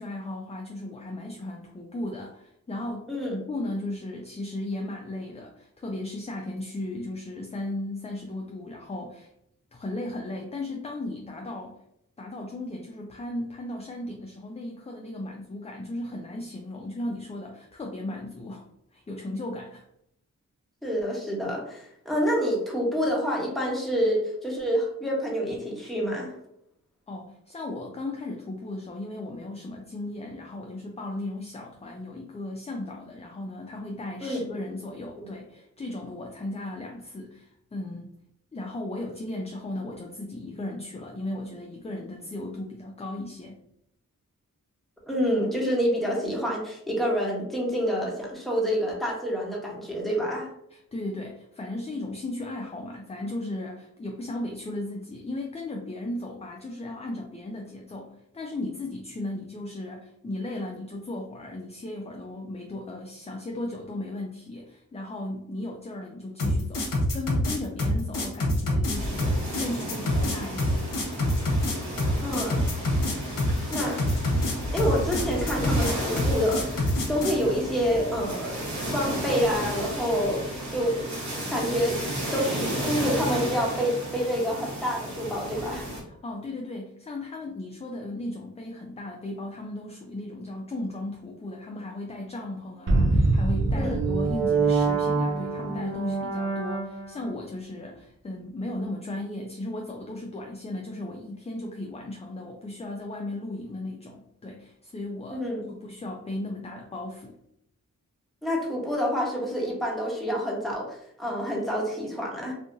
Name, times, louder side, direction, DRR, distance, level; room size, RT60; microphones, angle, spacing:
voice 1, 0.0-9.3 9.7-11.8 12.2-18.6 18.9-19.9 27.1-38.1 38.5-43.6 50.7-70.9 86.0-107.4, left 1 dB, 20° left, 1 dB, 0.4 m, -36 dB
voice 2, 20.8-26.3 34.2-34.6 35.2-35.3 45.1-50.5 72.2-72.7 73.7-74.0 74.7-78.6 78.9-82.0 82.3-85.9 93.7-94.0 105.3-105.6 108.4-112.5, equal, ahead, -4 dB, 1.2 m, -27 dB
sound 1, 66.4-77.4, left 1 dB, 65° left, 0.8 m, -26 dB
sound 2, 68.9-86.0, right 1 dB, 55° right, 1.2 m, -33 dB
sound 3, 92.9-97.3, right 3 dB, 35° right, 0.6 m, -25 dB
2.7 x 2.4 x 2.6 m, 0.76 s
cardioid pair, 40°, 35 cm